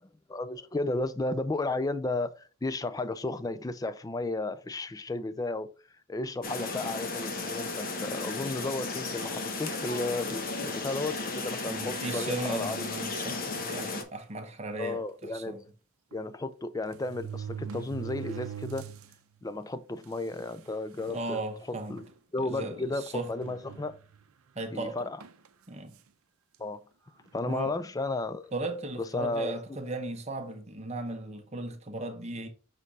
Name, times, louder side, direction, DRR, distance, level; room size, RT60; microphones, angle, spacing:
voice 1, 0.3-5.7 6.1-12.8 14.8-15.6 16.1-18.9 19.4-21.4 21.7-22.0 22.3-24.0 24.7-25.2 26.6-26.8 27.3-28.5 29.1-29.5, left 2 dB, 15° left, 0.3 m, -33 dB
sound 1, 6.4-14.0, left 3 dB, 40° left, 0.9 m, -34 dB
voice 2, 11.6-15.6 21.1-22.0 22.4-23.3 24.5-25.1 25.7-26.0 27.5-27.7 28.5-32.5, right 2 dB, 30° right, 1.0 m, -36 dB
sound 2, 13.3-13.5 14.3-14.4 14.7-14.8 16.1-16.2 16.9-19.1 19.6-19.7 20.5-20.6 21.0-21.4 22.0-22.1 23.4-24.2 25.2-25.5, right 8 dB, 80° right, 0.6 m, -41 dB
6.6 x 3.6 x 4.0 m
head